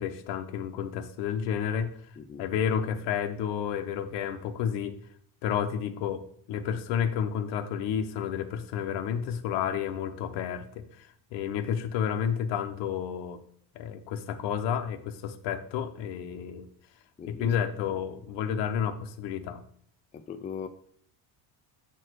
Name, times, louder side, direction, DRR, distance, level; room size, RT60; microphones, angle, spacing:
voice 1, 0.0-1.9 2.4-5.0 5.4-6.2 6.5-13.4 13.7-16.7 17.3-19.6, left 8 dB, 80° left, 1.0 m, -31 dB
voice 2, 17.2-17.5 20.1-20.7, left 6 dB, 20° left, 0.3 m, -39 dB
7.4 x 4.6 x 4.6 m
cardioid pair, 135°, 42 cm